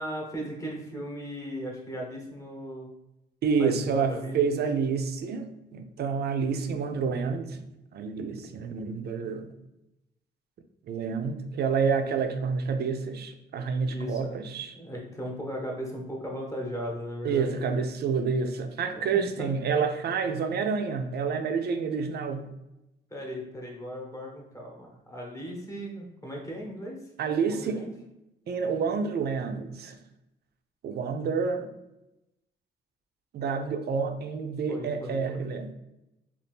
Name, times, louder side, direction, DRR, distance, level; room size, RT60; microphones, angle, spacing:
voice 1, 0.0-2.9 3.6-4.6 13.9-14.5 14.7-17.7 19.0-19.5 23.1-27.1 27.5-27.9 34.7-35.5, equal, 15° left, -2 dB, 0.9 m, -37 dB
voice 2, 3.4-7.6 7.9-9.5 10.8-14.7 17.2-22.5 27.2-27.8 28.5-30.0 30.8-31.7 33.3-35.7, right 5 dB, 55° right, 7 dB, 0.4 m, -28 dB
2.7 x 2.4 x 3.4 m, 0.92 s
cardioid pair, 90°, 20 cm